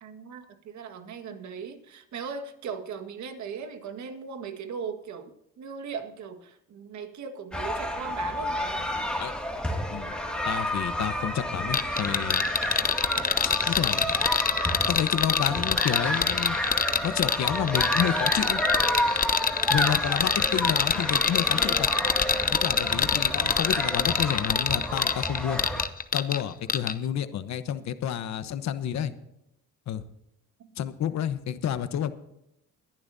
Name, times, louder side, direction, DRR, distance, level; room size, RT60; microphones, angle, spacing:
voice 1, 0.0-8.9 30.6-30.8, right 6 dB, 65° right, 6 dB, 1.8 m, -38 dB
sound 1, 7.5-25.9, left 1 dB, 5° left, 2.3 m, -30 dB
voice 2, 10.5-12.4 13.4-14.1 14.9-16.6 17.0-18.6 19.7-21.9 22.5-25.6 26.1-29.1 29.9-30.0 30.8-32.1, left 9 dB, 65° left, 11 dB, 1.1 m, -30 dB
sound 2, 11.7-26.4 26.7-26.9, left 6 dB, 30° left, 0.8 m, -25 dB
22.0 x 11.0 x 2.7 m, 0.81 s
cardioid pair, 90°, 30 cm